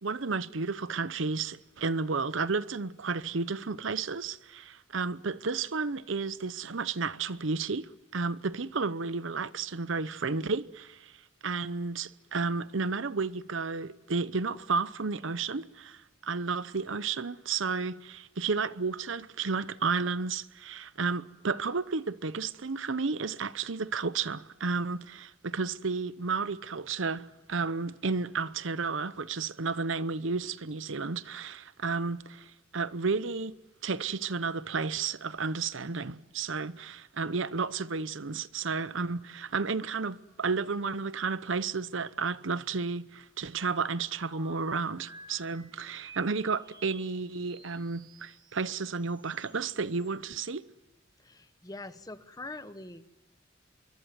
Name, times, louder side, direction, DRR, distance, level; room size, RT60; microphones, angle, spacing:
voice 1, 0.0-11.1 11.4-33.5 33.8-50.7, right 4 dB, 70° right, 0.8 m, -32 dB
sound 1, 44.3-50.1, right 3 dB, 20° right, 3.9 m, -54 dB
voice 2, 51.2-53.1, left 2 dB, 20° left, 1.1 m, -43 dB
25.5 x 23.5 x 9.3 m
head